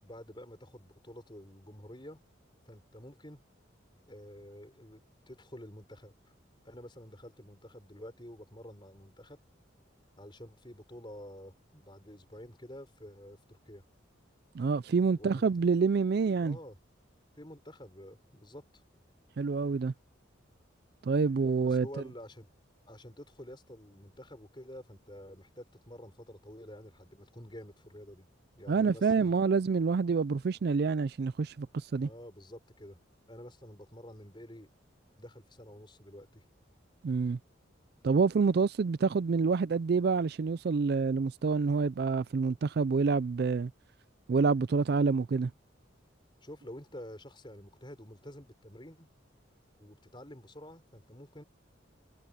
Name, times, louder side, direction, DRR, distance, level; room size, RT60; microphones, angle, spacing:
voice 1, 0.0-2.2 2.7-3.4 4.1-6.3 6.6-9.4 10.2-13.8 15.2-15.5 16.4-16.8 17.4-18.8 21.2-22.5 22.9-28.3 28.6-29.3 32.0-33.0 33.3-34.7 35.2-36.5 46.4-49.1 49.8-51.4, equal, 25° left, 5.3 m, -49 dB
voice 2, 14.5-16.6 19.4-19.9 21.0-21.9 28.7-32.1 37.0-37.4 38.0-43.7 44.3-45.5, right 4 dB, 55° right, 0.4 m, -27 dB
head